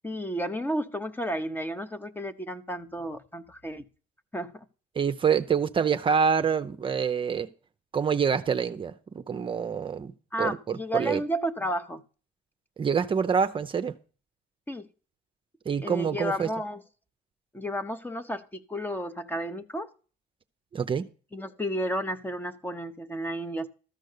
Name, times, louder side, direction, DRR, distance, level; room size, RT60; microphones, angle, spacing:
voice 1, 0.0-3.8 4.3-4.6 10.3-12.0 14.7-14.9 15.8-16.8 17.5-19.9 21.3-23.7, equal, 10° left, 0.8 m, -32 dB
voice 2, 4.9-7.5 7.9-10.1 10.4-11.2 12.8-13.9 15.7-16.5 20.7-21.1, right 6 dB, 30° right, 0.6 m, -26 dB
13.5 x 5.3 x 6.6 m
cardioid pair, 110°, 17 cm